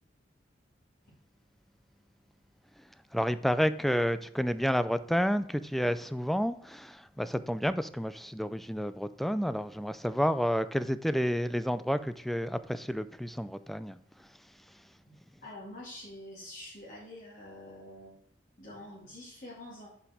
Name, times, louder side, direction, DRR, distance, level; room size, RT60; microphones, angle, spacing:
voice 1, 3.1-14.0, equal, ahead, 0.3 m, -30 dB
voice 2, 15.4-18.2 18.6-19.9, left 1 dB, 45° left, 2.2 m, -46 dB
7.4 x 5.2 x 4.8 m
head